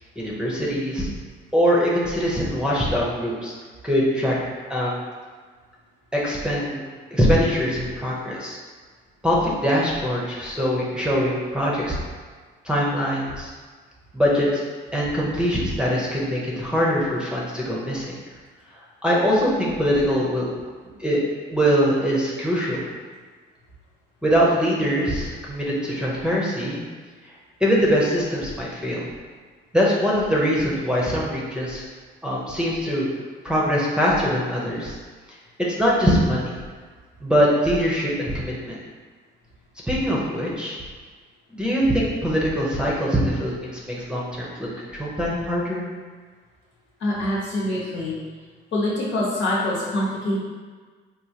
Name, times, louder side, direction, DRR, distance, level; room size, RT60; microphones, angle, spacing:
voice 1, 0.2-1.1 1.5-3.5 3.8-4.3 4.7-5.0 6.1-6.8 7.1-8.6 9.2-12.0 12.6-13.5 14.1-14.6 14.9-18.1 19.0-20.5 21.0-21.2 21.5-22.8 24.2-26.8 27.2-27.3 27.6-29.1 29.7-31.8 32.2-33.1 33.4-35.0 35.3-36.5 37.2-38.8 39.9-40.8 41.5-45.8, equal, 5° right, -5 dB, 0.7 m, -22 dB
voice 2, 47.0-48.2 48.7-50.4, left 1 dB, 70° left, -7 dB, 1.2 m, -25 dB
3.7 x 2.5 x 2.8 m, 1.5 s
cardioid pair, 90°, 20 cm